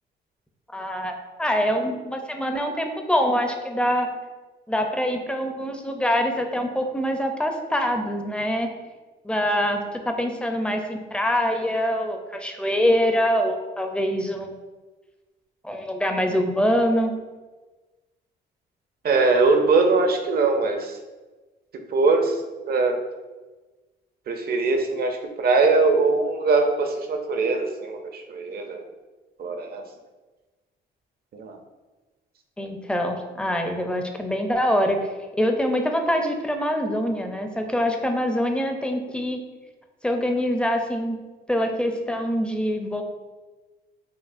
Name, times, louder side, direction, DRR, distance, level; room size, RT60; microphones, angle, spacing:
voice 1, 0.7-1.1 1.4-4.1 4.7-8.7 9.2-14.5 15.6-17.1 32.6-35.1 35.4-39.4 40.0-41.2 41.5-43.0, equal, 5° left, 4 dB, 0.4 m, -24 dB
voice 2, 19.0-20.9 21.9-22.4 22.7-23.0 24.3-28.8 29.4-29.8 31.3-31.6, right 3 dB, 50° right, 5 dB, 0.5 m, -21 dB
5.4 x 2.3 x 2.5 m, 1.2 s
cardioid pair, 90°, 20 cm